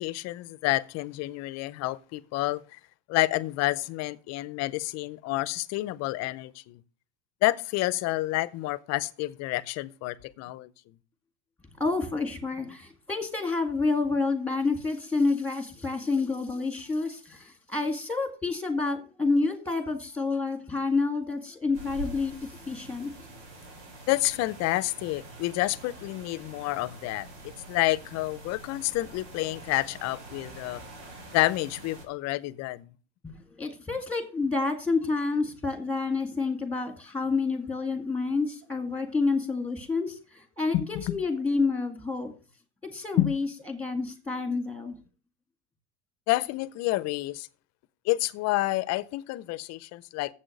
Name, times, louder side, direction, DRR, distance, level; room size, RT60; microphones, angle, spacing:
voice 1, 0.0-2.8 3.1-6.8 7.4-10.7 24.1-27.3 27.7-30.8 31.3-32.9 40.7-41.1 43.2-43.3 46.3-47.5 48.1-50.3, left 18 dB, 50° left, 0.7 m, -29 dB
voice 2, 11.7-23.1 33.2-42.3 42.9-45.0, left 3 dB, 5° left, 2.0 m, -29 dB
sound 1, 21.7-32.0, right 2 dB, 90° right, 3.1 m, -45 dB
7.7 x 6.2 x 6.5 m
supercardioid pair, 130°, 34 cm